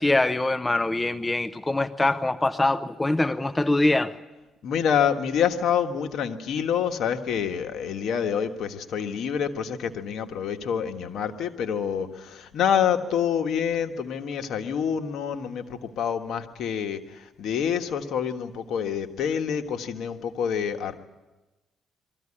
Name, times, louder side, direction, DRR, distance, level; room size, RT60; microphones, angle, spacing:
voice 1, 0.0-4.1, left 2 dB, 15° left, 0.8 m, -23 dB
voice 2, 4.6-20.9, left 8 dB, 75° left, 1.5 m, -27 dB
22.5 x 14.5 x 9.9 m
cardioid pair, 90°, 0 cm